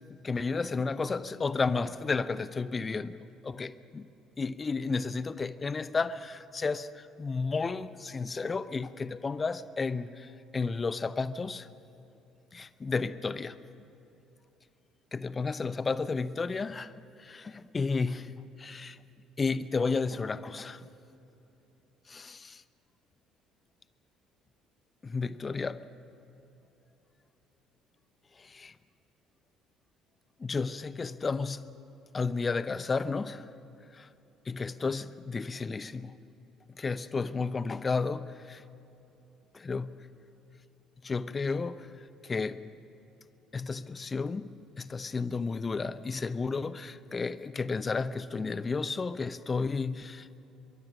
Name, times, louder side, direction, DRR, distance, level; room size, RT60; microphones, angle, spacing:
voice 1, 0.1-3.1 3.4-4.1 4.4-11.7 12.5-13.5 15.1-16.9 17.2-18.3 18.6-19.0 19.4-20.8 22.1-22.6 25.0-25.8 28.4-28.7 30.4-31.7 32.1-33.5 33.9-34.1 34.5-36.1 36.8-38.6 39.5-40.0 41.0-41.9 42.2-42.6 43.5-50.3, left 4 dB, 30° left, 0.8 m, -32 dB
23.5 x 22.5 x 6.3 m
figure-of-eight pair, 50°, 0 cm